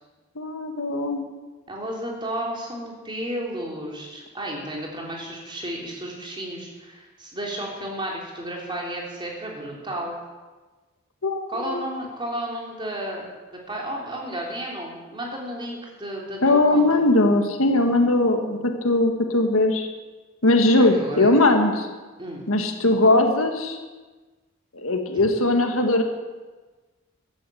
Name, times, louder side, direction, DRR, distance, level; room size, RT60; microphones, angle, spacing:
voice 1, 0.4-1.3 11.2-11.8 16.4-19.9 20.4-21.9 22.5-23.8 24.7-26.0, left 2 dB, 75° left, 4 dB, 1.8 m, -20 dB
voice 2, 1.7-10.2 11.5-13.3 13.7-17.0 21.0-21.3 22.2-22.4 25.1-25.2, right 1 dB, 20° right, -2 dB, 3.5 m, -32 dB
15.0 x 11.0 x 7.8 m, 1.3 s
head